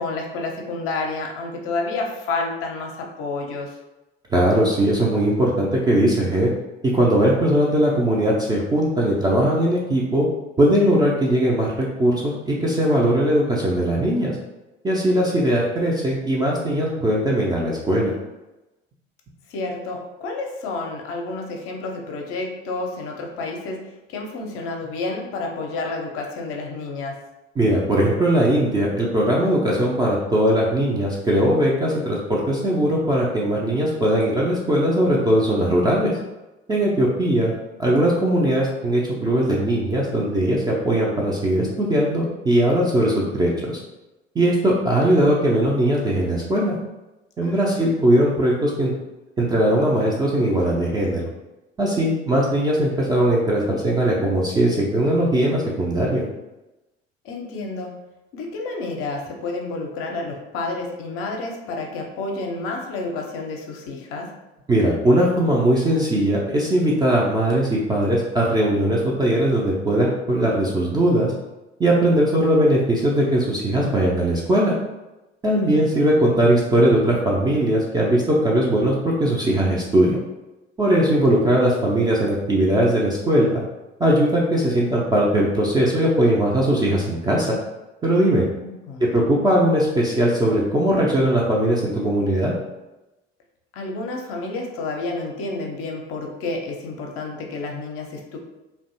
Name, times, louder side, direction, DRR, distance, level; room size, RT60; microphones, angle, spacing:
voice 1, 0.0-3.8 19.5-23.8 24.1-27.2 47.4-47.8 57.2-58.0 58.3-64.3 75.6-75.9 88.4-89.0 93.7-98.4, left 3 dB, 45° left, 1 dB, 0.5 m, -30 dB
voice 2, 4.3-6.5 6.9-10.3 10.6-14.4 14.8-18.1 27.6-36.1 36.7-37.5 37.8-43.8 44.4-46.8 47.4-48.9 49.4-51.3 51.8-56.2 64.7-71.3 71.8-74.7 75.4-80.2 80.8-83.6 84.0-87.6 88.0-88.4 89.0-92.5, right 1 dB, 15° right, -4 dB, 0.3 m, -20 dB
2.5 x 2.2 x 2.7 m, 1.0 s
figure-of-eight pair, 60°, 33 cm